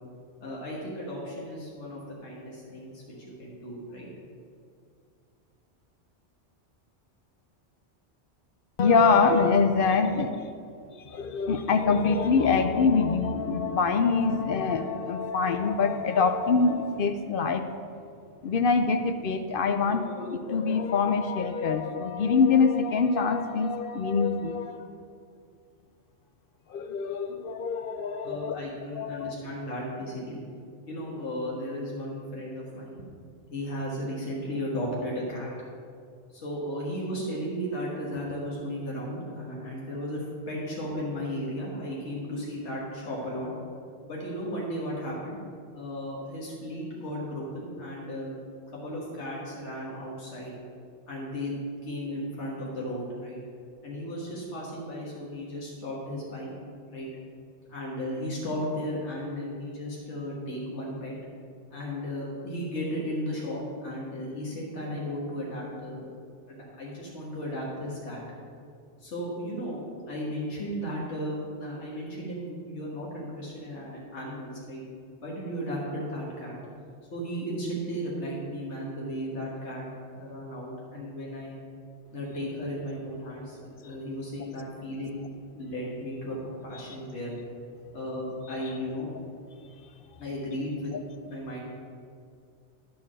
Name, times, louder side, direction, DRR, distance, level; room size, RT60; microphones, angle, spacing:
voice 1, 0.4-4.1 28.2-30.4 30.9-33.1 33.5-35.5 36.3-43.5 44.1-45.4 45.7-48.4 48.7-50.5 51.1-53.4 53.8-56.5 56.9-57.1 57.7-61.1 61.7-66.2 66.5-68.2 69.0-74.8 75.2-76.6 77.1-79.9 80.1-81.5 82.1-85.2 85.5-87.4 87.9-89.1 90.2-90.9 91.2-91.6, equal, 80° left, -5 dB, 1.7 m, -35 dB
voice 2, 8.8-10.4 10.9-17.6 18.4-24.9 26.7-28.6 29.0-29.3, left 5 dB, 60° left, 7 dB, 0.7 m, -24 dB
10.5 x 4.7 x 6.1 m, 2.3 s
omnidirectional pair, 1.2 m